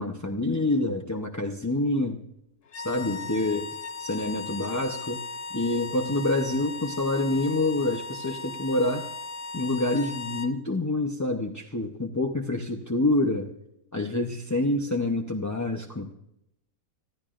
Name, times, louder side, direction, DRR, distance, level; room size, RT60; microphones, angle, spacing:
voice 1, 0.0-2.2 2.8-3.7 4.0-5.2 5.5-9.0 9.5-13.5 13.9-16.1, left 2 dB, 20° left, 1 dB, 0.5 m, -27 dB
sound 1, 2.7-10.6, left 4 dB, 55° left, 0.7 m, -37 dB
24.5 x 14.0 x 2.5 m, 0.82 s
omnidirectional pair, 1.6 m